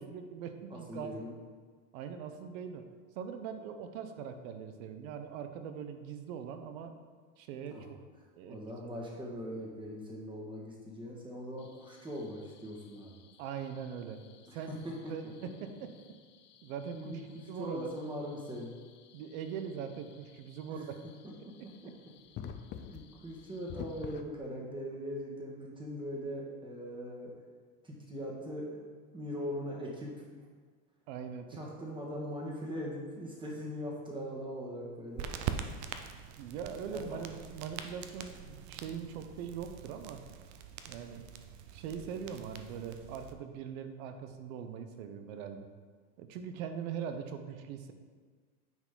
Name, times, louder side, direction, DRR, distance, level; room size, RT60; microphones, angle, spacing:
voice 1, 0.0-1.3 1.9-2.9 3.1-7.0 7.4-8.0 8.3-8.6 8.8-9.0 13.4-14.2 14.5-14.8 15.1-15.9 16.6-17.2 17.5-17.9 19.1-21.0 31.1-31.6 36.4-40.2 40.9-41.2 41.7-45.7 46.2-47.9, right 7 dB, 70° right, 8 dB, 0.9 m, -41 dB
voice 2, 0.7-1.3 7.7-7.9 8.4-13.2 14.5-15.3 16.9-18.7 20.7-20.8 21.4-21.5 22.9-27.3 27.8-28.8 29.1-30.1 31.6-35.3 36.9-37.2, equal, 10° right, -3 dB, 1.7 m, -41 dB
sound 1, 11.6-24.2, left 8 dB, 30° left, 0.4 m, -52 dB
sound 2, 35.2-43.3, right 8 dB, 45° right, 0.6 m, -43 dB
9.5 x 5.0 x 3.8 m, 1.5 s
supercardioid pair, 125°, 42 cm